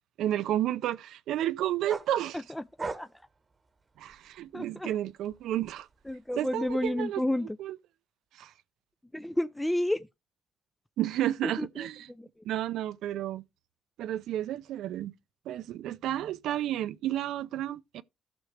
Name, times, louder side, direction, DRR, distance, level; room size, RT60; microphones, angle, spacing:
voice 1, 0.2-2.4 4.0-5.9 6.4-7.2 7.6-7.8 8.3-8.5 11.0-12.1 12.4-13.4 14.0-15.1 15.5-18.0, right 12 dB, 85° right, 0.5 m, -31 dB
sound 1, 1.9-4.5 4.9-6.9, right 3 dB, 30° right, 1.0 m, -42 dB
voice 2, 4.5-4.9 6.1-7.6 9.1-10.0 11.4-11.7 12.2-12.3, left 1 dB, 5° left, 0.4 m, -30 dB
14.5 x 6.1 x 3.3 m
cardioid pair, 90°, 0 cm